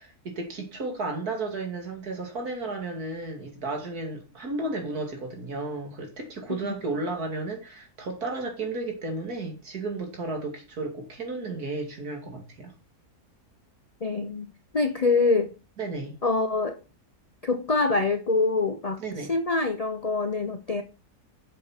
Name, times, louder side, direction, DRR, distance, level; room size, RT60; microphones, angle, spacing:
voice 1, 0.0-12.7 15.8-16.2 19.0-19.3, right 3 dB, 65° right, 3.0 m, -33 dB
voice 2, 14.0-14.5 14.7-15.5 16.2-16.8 17.4-20.8, left 3 dB, 45° left, 0.5 m, -25 dB
7.8 x 7.6 x 5.8 m
omnidirectional pair, 1.7 m